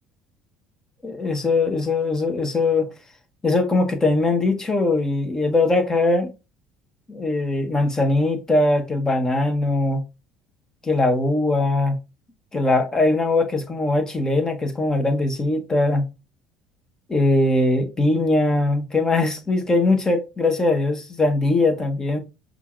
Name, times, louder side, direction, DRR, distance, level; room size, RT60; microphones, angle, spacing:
voice 1, 1.0-2.9 3.4-6.3 7.1-10.0 10.8-11.9 12.5-16.1 17.1-22.2, left 2 dB, 20° left, 1.1 m, -21 dB
5.3 x 2.5 x 3.1 m
figure-of-eight pair, 60°, 3 cm